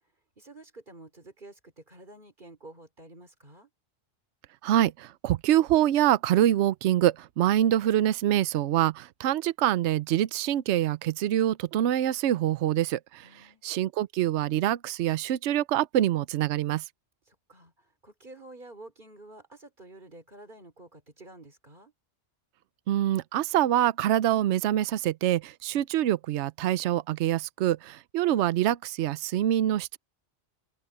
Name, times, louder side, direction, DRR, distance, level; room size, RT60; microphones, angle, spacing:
voice 1, 0.4-3.7 13.2-13.6 17.3-21.9, right 2 dB, 45° right, 4.4 m, -50 dB
voice 2, 4.6-13.3 13.6-16.8 22.9-30.0, right 12 dB, 75° right, 0.9 m, -25 dB
open air
omnidirectional pair, 1.2 m